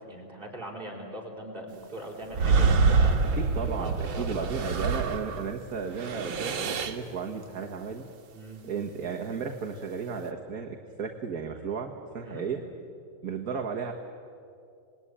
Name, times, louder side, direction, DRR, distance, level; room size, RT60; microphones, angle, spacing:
voice 1, 0.0-3.2 3.8-4.5 8.3-8.6 12.2-12.5, right 1 dB, 25° right, -1 dB, 5.0 m, -40 dB
sound 1, 2.3-5.5 5.9-7.1, right 4 dB, 65° right, 2.2 m, -26 dB
voice 2, 3.3-8.0 8.6-12.6 13.2-13.9, right 5 dB, 45° right, 2 dB, 1.8 m, -34 dB
26.5 x 20.5 x 10.0 m, 2.5 s
omnidirectional pair, 2.3 m